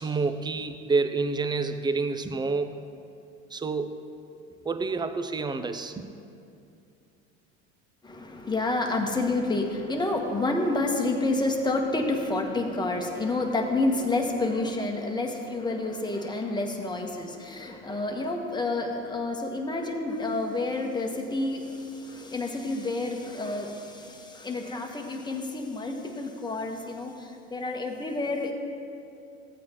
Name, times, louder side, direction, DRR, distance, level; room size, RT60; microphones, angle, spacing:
voice 1, 0.0-2.8 3.5-3.9 4.6-6.1, right 4 dB, 15° right, 9 dB, 0.5 m, -28 dB
voice 2, 8.0-28.5, left 2 dB, 15° left, 2 dB, 1.3 m, -29 dB
15.5 x 8.4 x 3.0 m, 2.6 s
supercardioid pair, 90°, 32 cm